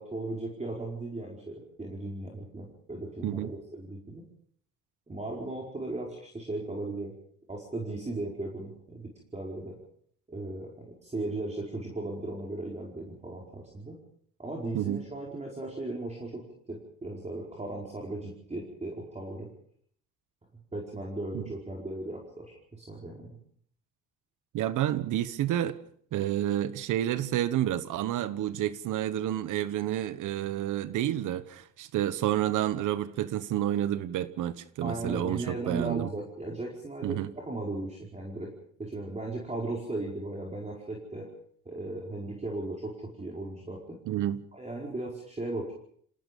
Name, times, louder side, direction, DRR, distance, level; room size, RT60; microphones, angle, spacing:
voice 1, 0.0-4.2 5.1-7.1 7.5-9.8 10.3-14.0 14.4-19.5 20.7-23.4 34.8-38.5 38.8-41.3 41.6-44.0 44.5-45.7, right 2 dB, 20° right, 5.0 m, -37 dB
voice 2, 24.5-25.8 26.1-36.1 37.0-37.3 44.1-44.4, right 12 dB, 85° right, 1.2 m, -29 dB
27.0 x 18.0 x 5.4 m
cardioid pair, 90°, 30 cm